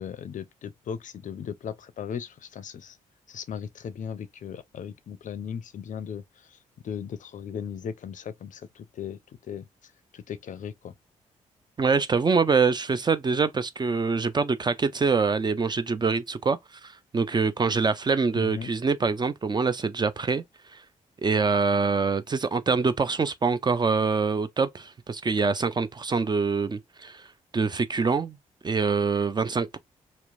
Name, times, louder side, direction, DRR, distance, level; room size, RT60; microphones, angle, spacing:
voice 1, 0.0-3.0 3.3-6.6 6.8-10.9 18.3-18.7, left 7 dB, 55° left, 0.5 m, -37 dB
voice 2, 11.8-20.4 21.2-27.2 27.5-28.4 28.6-29.8, right 4 dB, 25° right, 0.4 m, -25 dB
2.9 x 2.0 x 2.5 m
hypercardioid pair, 45°, 16 cm